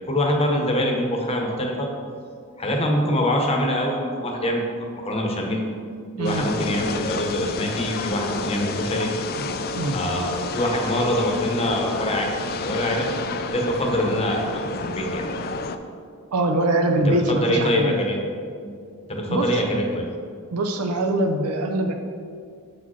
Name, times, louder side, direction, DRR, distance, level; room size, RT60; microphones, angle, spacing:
voice 1, 0.1-1.9 2.6-4.6 5.0-5.6 6.2-9.1 9.9-12.3 12.6-13.1 13.5-15.3 17.0-18.2 18.6-18.8 19.1-20.1, left 1 dB, 30° left, 1 dB, 0.9 m, -24 dB
sound 1, 6.2-15.8, left 3 dB, 45° left, 0.3 m, -30 dB
voice 2, 16.3-18.0 19.3-19.7 20.5-21.9, right 2 dB, 80° right, 4 dB, 0.5 m, -23 dB
7.0 x 4.9 x 4.2 m, 2.2 s
head